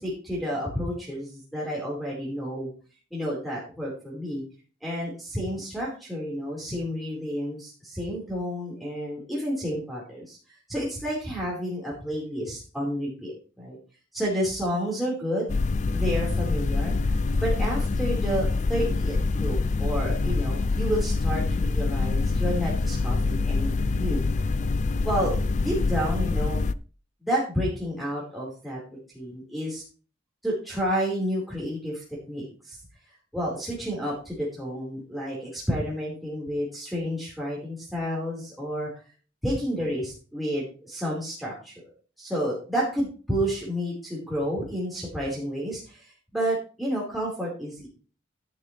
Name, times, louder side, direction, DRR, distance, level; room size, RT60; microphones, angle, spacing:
voice 1, 0.0-2.7 3.1-4.4 4.8-13.8 14.1-15.5 15.9-17.1 17.4-24.2 25.0-26.6 27.2-28.8 29.1-29.8 30.4-32.8 33.3-38.9 39.4-41.7 42.2-47.9, equal, ahead, -6 dB, 4.7 m, -30 dB
sound 1, 15.5-26.7, left 3 dB, 40° left, 0.4 m, -25 dB
11.5 x 10.5 x 3.4 m, 0.37 s
head